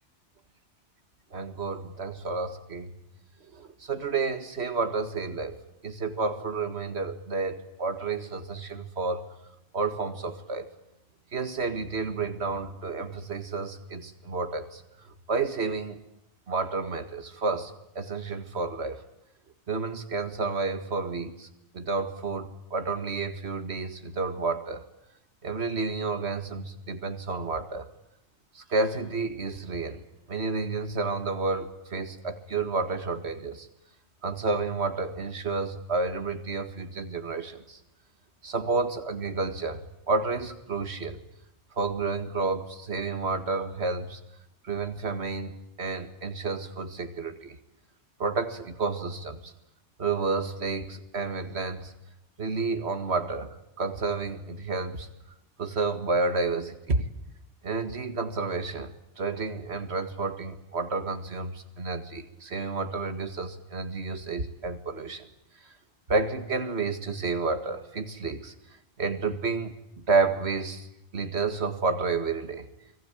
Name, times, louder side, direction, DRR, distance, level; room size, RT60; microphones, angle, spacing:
voice 1, 1.3-2.9 3.5-9.3 9.7-10.7 11.3-14.8 15.3-16.0 16.5-19.0 19.7-21.5 21.7-24.8 25.4-27.9 28.5-30.0 30.3-33.7 34.2-37.8 38.4-41.2 41.8-44.2 44.6-47.6 48.2-49.5 50.0-51.9 52.4-55.1 55.6-57.0 57.6-58.9 59.2-65.3 66.1-68.5 69.0-70.9 71.1-72.7, right 4 dB, 70° right, 8 dB, 2.1 m, -30 dB
29.5 x 21.0 x 9.1 m, 0.85 s
omnidirectional pair, 1.2 m